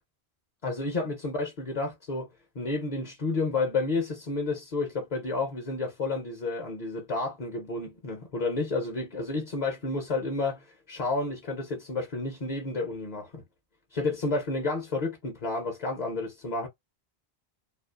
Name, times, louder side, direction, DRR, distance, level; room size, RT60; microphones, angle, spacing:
voice 1, 0.6-2.3 2.6-13.4 13.9-16.7, left 3 dB, 45° left, 0.7 m, -31 dB
2.5 x 2.3 x 2.3 m
omnidirectional pair, 1.0 m